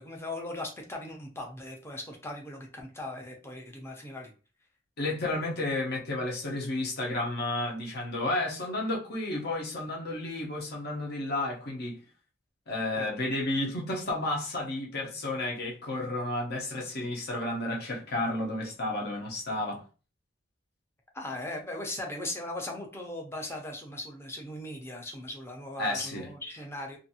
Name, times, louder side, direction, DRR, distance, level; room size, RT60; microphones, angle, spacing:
voice 1, 0.0-4.3 12.9-13.1 21.1-27.0, left 1 dB, 15° left, 0.6 m, -39 dB
voice 2, 5.0-12.0 12.7-19.8 25.8-26.3, left 2 dB, 55° left, 0.8 m, -32 dB
2.6 x 2.5 x 2.7 m
head